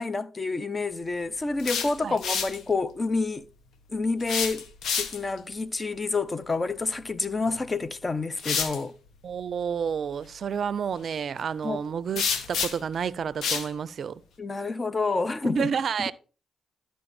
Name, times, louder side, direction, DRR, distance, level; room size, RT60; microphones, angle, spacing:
voice 1, 0.0-3.5 3.9-4.6 5.0-8.9 11.6-11.8 14.4-15.7 16.0-16.1, left 3 dB, 35° left, 0.7 m, -28 dB
sound 1, 1.4-2.6 4.2-5.4 7.4-7.6 8.4-8.8 12.2-12.9 13.4-13.7, left 6 dB, 75° left, 0.9 m, -29 dB
voice 2, 9.2-14.2 15.5-16.1, right 7 dB, 65° right, 0.4 m, -30 dB
12.0 x 4.6 x 4.2 m
supercardioid pair, 50°, 0 cm